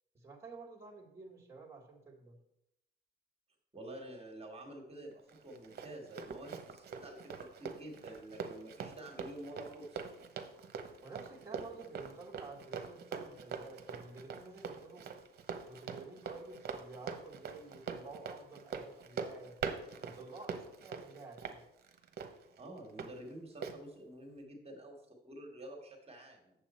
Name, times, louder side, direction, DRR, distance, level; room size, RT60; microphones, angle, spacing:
voice 1, 0.1-2.4 11.0-15.1 15.7-19.6 20.0-21.6, right 3 dB, 10° right, -1 dB, 1.8 m, -51 dB
voice 2, 3.7-10.1 22.6-25.0 25.2-26.5, right 1 dB, 30° right, 1 dB, 1.8 m, -49 dB
Run, 5.3-23.1 23.6-23.8, right 6 dB, 55° right, 1.0 m, -43 dB
7.9 x 7.0 x 4.3 m, 0.83 s
cardioid pair, 90°, 20 cm